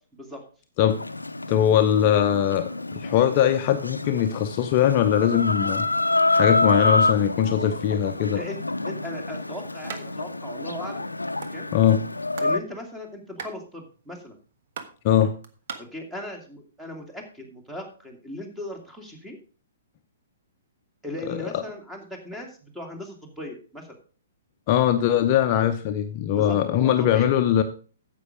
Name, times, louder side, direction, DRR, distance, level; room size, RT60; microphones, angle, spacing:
Chicken rooster, 0.9-12.6, left 2 dB, 85° left, 0.6 m, -27 dB
voice 1, 1.5-5.9 6.3-8.4 11.7-12.0 15.0-15.3 21.3-21.6 24.7-27.6, left 10 dB, 35° left, 7 dB, 0.7 m, -21 dB
voice 2, 8.9-11.1 11.5-11.7 12.4-14.4 15.8-19.4 21.0-24.0 26.3-27.3, left 1 dB, 5° right, 3 dB, 2.3 m, -38 dB
sound 1, 9.9-10.0 10.4-10.5 10.7-11.5 12.0-12.6 12.8-15.8, right 6 dB, 50° right, 1.2 m, -38 dB
9.6 x 7.6 x 5.0 m, 0.39 s
figure-of-eight pair, 120°, 0 cm